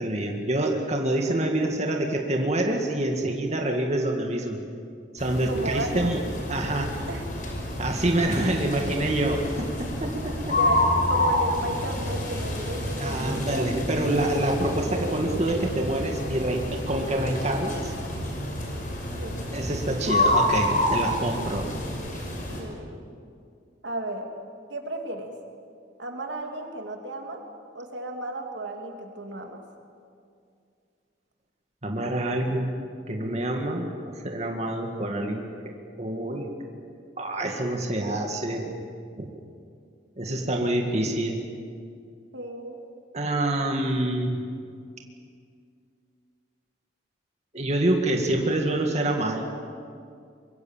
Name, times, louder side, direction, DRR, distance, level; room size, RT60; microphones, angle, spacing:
voice 1, 0.0-4.6 5.1-6.2 6.5-6.9 7.8-10.6 13.0-17.9 19.5-21.7 31.8-32.8 33.1-35.5 36.0-36.5 37.2-38.8 39.2-39.3 40.2-41.4 43.1-44.4 47.5-49.4, right 1 dB, 40° right, 2 dB, 2.2 m, -26 dB
sound 1, 5.2-22.6, left 1 dB, 50° left, 5.7 m, -28 dB
voice 2, 5.5-6.1 7.1-7.2 8.7-8.8 10.6-13.7 19.2-19.4 22.6-23.0 23.8-24.3 24.7-25.3 26.0-27.4 27.7-29.6 42.3-42.8, right 1 dB, 85° right, 3 dB, 2.9 m, -34 dB
24.5 x 23.0 x 7.5 m, 2.3 s
head